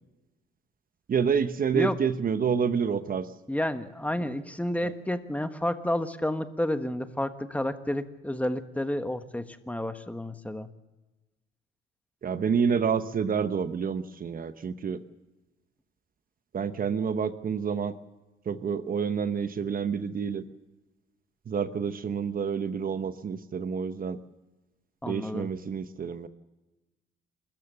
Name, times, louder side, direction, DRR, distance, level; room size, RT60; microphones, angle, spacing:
voice 1, 1.1-3.3 4.8-4.9 12.2-15.0 16.5-17.9 18.5-20.4 21.5-24.2 25.1-26.3, right 6 dB, 45° right, 11 dB, 1.0 m, -28 dB
voice 2, 3.5-10.7 25.0-25.5, left 1 dB, 5° left, 9 dB, 1.4 m, -30 dB
28.0 x 14.0 x 6.8 m, 1.1 s
cardioid pair, 90°, 20 cm